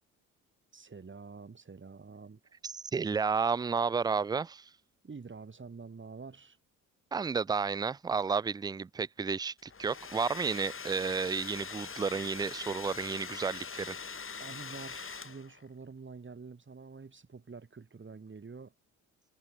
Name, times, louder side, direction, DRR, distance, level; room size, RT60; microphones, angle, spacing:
voice 1, 0.7-2.4 5.0-6.6 14.4-18.7, right 4 dB, 30° right, 6.8 m, -47 dB
voice 2, 2.6-4.6 7.1-13.9, right 5 dB, 10° right, 0.4 m, -32 dB
Domestic sounds home sounds, 9.6-15.6, left 5 dB, 30° left, 5.4 m, -43 dB
figure-of-eight pair, 50°, 40 cm